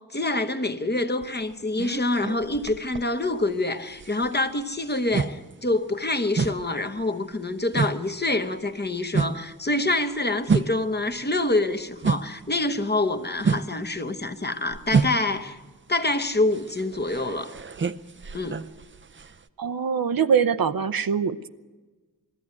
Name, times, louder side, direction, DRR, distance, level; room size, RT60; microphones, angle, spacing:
voice 1, 0.1-15.6 15.9-17.5 18.3-18.6, left 2 dB, 30° left, 1.0 m, -26 dB
sound 1, 1.2-3.6 3.9-12.5 12.8-19.5, right 5 dB, 35° right, 0.6 m, -29 dB
voice 2, 19.6-21.5, right 6 dB, 75° right, 0.8 m, -23 dB
20.5 x 14.0 x 9.6 m
wide cardioid pair, 110°, 35 cm